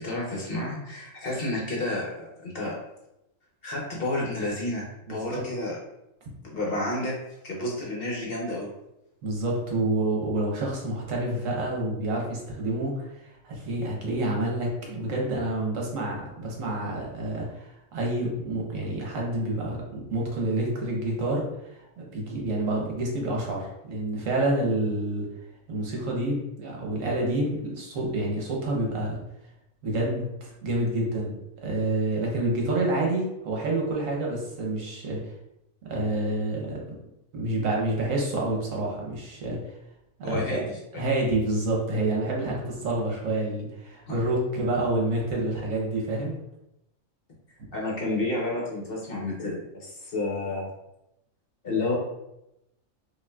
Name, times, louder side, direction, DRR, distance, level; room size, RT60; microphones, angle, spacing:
voice 1, 0.0-2.8 3.6-5.8 6.4-7.2 7.4-8.7 40.2-40.8 44.1-44.2 47.7-50.7 51.6-51.9, left 2 dB, 50° left, -3 dB, 0.9 m, -30 dB
voice 2, 5.1-5.4 9.2-21.8 22.1-25.3 25.7-29.2 29.8-31.3 31.6-35.2 35.8-36.8 37.3-39.7 40.2-40.6 40.9-46.4, right 2 dB, 70° right, -2 dB, 1.3 m, -28 dB
5.2 x 2.6 x 2.3 m, 0.87 s
omnidirectional pair, 1.4 m